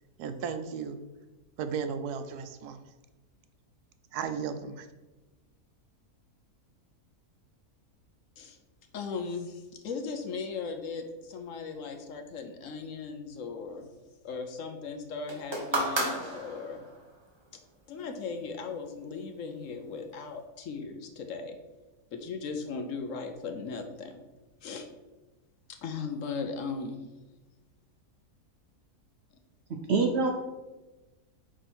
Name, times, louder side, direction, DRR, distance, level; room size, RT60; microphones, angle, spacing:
voice 1, 0.2-1.0 1.6-2.8 4.1-4.9, right 6 dB, 85° right, 9 dB, 1.1 m, -35 dB
voice 2, 8.9-13.9 14.2-16.9 17.9-21.6 22.1-24.2 24.6-24.9 25.7-27.1, left 4 dB, 65° left, 5 dB, 0.9 m, -37 dB
sound 1, 15.3-17.0 18.0-18.1, right 1 dB, 20° right, 0.9 m, -32 dB
voice 3, 29.7-30.3, right 4 dB, 65° right, 3 dB, 0.7 m, -25 dB
5.0 x 4.7 x 4.3 m, 1.1 s
omnidirectional pair, 1.6 m